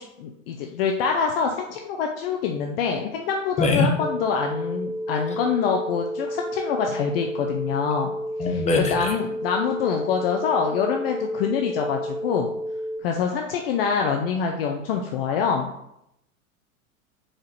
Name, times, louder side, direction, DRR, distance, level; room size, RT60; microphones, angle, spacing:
voice 1, 0.0-8.1 8.5-12.5 13.0-15.7, left 6 dB, 45° left, 3 dB, 0.7 m, -25 dB
sound 1, 4.0-13.0, equal, 10° right, 1.0 m, -31 dB
voice 2, 8.4-9.1, left 3 dB, 15° left, 2 dB, 1.1 m, -22 dB
4.7 x 4.4 x 4.6 m, 0.79 s
figure-of-eight pair, 90°, 42 cm